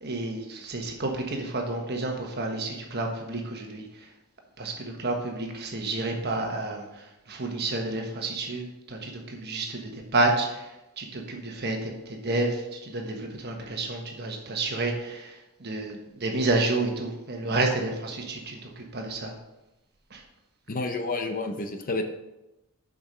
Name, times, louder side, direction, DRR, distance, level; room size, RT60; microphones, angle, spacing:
voice 1, 0.0-3.8 4.6-6.8 7.3-10.5 11.0-12.6 12.9-15.2 15.6-15.9 16.2-18.6 18.9-19.3 20.1-20.2, right 2 dB, 50° right, 2 dB, 1.3 m, -29 dB
voice 2, 20.7-22.0, left 3 dB, 40° left, 6 dB, 0.7 m, -30 dB
7.1 x 5.1 x 5.1 m, 0.96 s
head